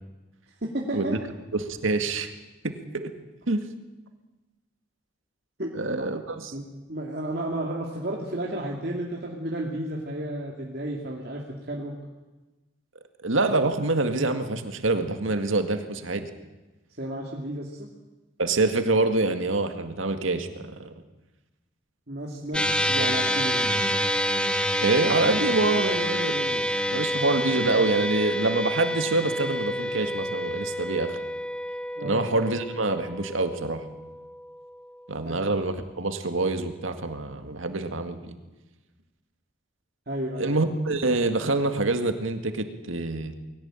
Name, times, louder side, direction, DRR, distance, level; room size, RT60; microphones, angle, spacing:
voice 1, 0.6-1.2 5.6-6.1 6.5-6.6 6.9-11.9 17.0-17.9 22.1-23.7 32.0-32.2 35.2-35.4 40.1-40.5, right 1 dB, 50° right, -2 dB, 2.6 m, -32 dB
voice 2, 1.5-2.3 2.6-3.1 3.5-3.7 5.8-6.5 13.2-16.3 18.4-20.9 23.0-23.1 24.8-31.2 32.0-33.8 35.1-38.3 40.4-43.3, right 2 dB, 90° right, 7 dB, 2.1 m, -26 dB
sound 1, 22.5-35.1, equal, 5° left, 1.4 m, -28 dB
21.5 x 17.5 x 9.0 m, 1.1 s
head